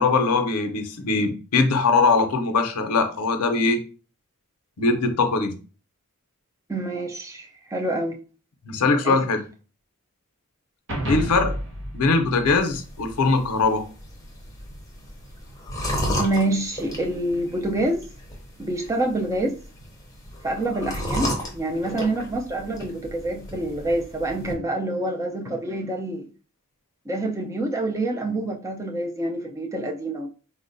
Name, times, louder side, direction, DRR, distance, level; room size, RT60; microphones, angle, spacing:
voice 1, 0.0-3.8 4.8-5.5 8.6-9.4 11.1-11.6 11.9-13.9, left 3 dB, 90° left, 0.5 m, -21 dB
voice 2, 6.7-8.2 9.0-9.2 16.2-18.1 18.6-19.6 20.4-26.3 27.1-30.3, right 1 dB, 15° right, 0.3 m, -27 dB
sound 1, 10.9-13.4, equal, 60° right, 0.8 m, -31 dB
sound 2, 12.5-24.5, equal, 15° left, 0.7 m, -34 dB
3.8 x 2.1 x 2.5 m
head